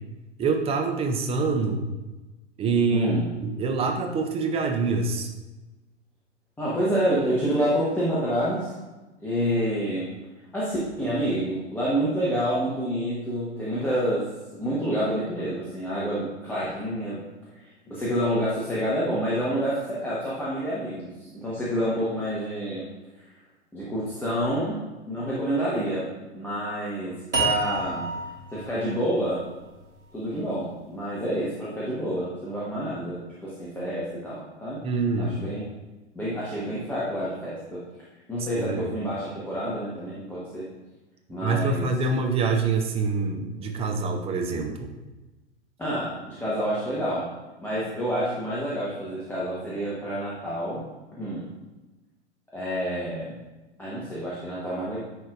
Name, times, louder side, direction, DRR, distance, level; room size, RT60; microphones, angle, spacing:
voice 1, 0.4-1.8 2.6-3.1 3.4-5.3 34.8-35.4 38.6-38.9 41.4-44.9, right 4 dB, 15° right, 4 dB, 0.6 m, -25 dB
voice 2, 2.9-3.2 6.6-8.7 9.2-10.1 10.5-14.3 14.5-17.2 17.6-22.8 23.7-24.8 25.1-26.1 26.3-28.1 28.5-29.4 30.1-34.8 35.2-35.6 36.1-37.8 38.3-40.7 41.3-41.8 44.0-44.1 45.8-47.3 47.6-50.8 51.2-51.5 52.5-53.4 53.8-55.0, equal, 5° left, -9 dB, 1.3 m, -28 dB
sound 1, 27.3-30.5, right 3 dB, 85° right, 1.4 m, -30 dB
10.0 x 4.5 x 2.5 m, 1.1 s
figure-of-eight pair, 95°, 35 cm